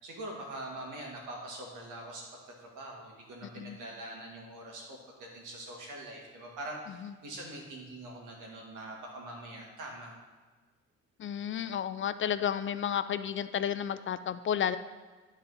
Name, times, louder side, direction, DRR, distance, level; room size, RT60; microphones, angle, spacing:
voice 1, 0.0-2.2 2.6-10.2, right 1 dB, 85° right, -1 dB, 2.0 m, -43 dB
voice 2, 11.2-14.8, left 9 dB, 40° left, 13 dB, 0.4 m, -32 dB
12.0 x 4.1 x 4.0 m, 1.3 s
cardioid pair, 90°, 30 cm